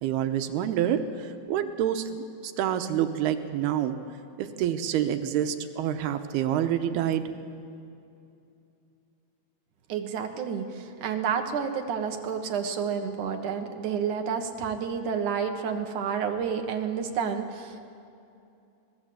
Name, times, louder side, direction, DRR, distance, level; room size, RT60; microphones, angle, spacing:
voice 1, 0.0-2.2 2.4-4.0 4.4-7.3, right 10 dB, 90° right, 8 dB, 3.0 m, -27 dB
voice 2, 9.9-17.8, right 7 dB, 60° right, 5 dB, 2.5 m, -30 dB
26.0 x 19.5 x 7.9 m, 2.6 s
omnidirectional pair, 4.5 m